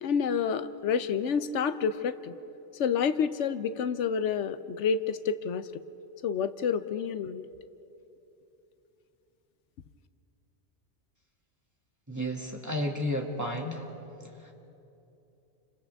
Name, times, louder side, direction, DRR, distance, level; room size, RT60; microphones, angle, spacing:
voice 1, 0.0-2.3 2.8-5.8 6.2-7.5, left 6 dB, 85° left, 12 dB, 1.0 m, -29 dB
voice 2, 12.1-13.9 14.2-14.5, equal, 15° right, -1 dB, 2.1 m, -32 dB
29.5 x 26.0 x 3.5 m, 2.9 s
omnidirectional pair, 1.2 m